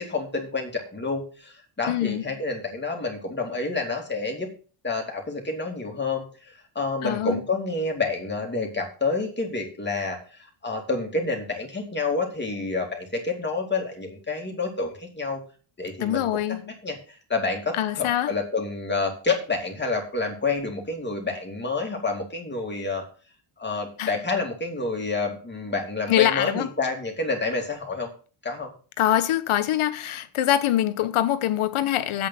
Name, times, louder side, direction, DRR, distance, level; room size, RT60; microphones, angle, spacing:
voice 1, 0.0-4.5 4.8-15.4 15.8-23.0 23.6-28.1 28.4-28.7, left 3 dB, 20° left, 2.7 m, -29 dB
voice 2, 1.9-2.2 7.0-7.4 16.0-16.7 17.7-18.3 24.0-24.2 26.1-26.7 29.0-32.3, left 12 dB, 75° left, 1.1 m, -24 dB
8.6 x 8.2 x 5.6 m
cardioid pair, 130°, 50 cm